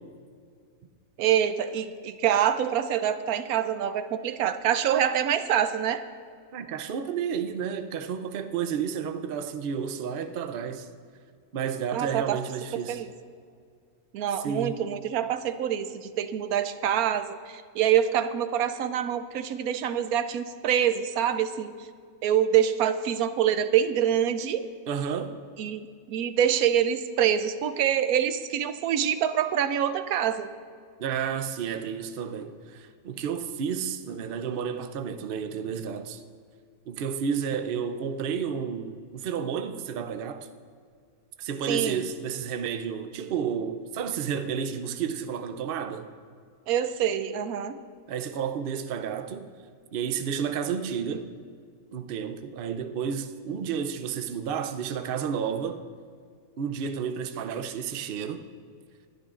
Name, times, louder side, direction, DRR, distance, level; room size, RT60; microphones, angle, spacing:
voice 1, 1.2-6.0 11.9-12.4 12.7-13.1 14.1-21.7 22.2-24.6 25.6-25.8 26.1-30.5 41.7-42.1 46.7-47.8, right 9 dB, 75° right, 1.1 m, -25 dB
voice 2, 6.5-10.9 11.5-13.0 14.4-14.8 24.9-25.4 31.0-36.2 36.9-40.5 41.4-46.1 48.1-49.5 49.9-51.3 51.9-55.8 56.6-58.5, right 7 dB, 55° right, 0.6 m, -31 dB
21.0 x 12.0 x 2.5 m
omnidirectional pair, 1.6 m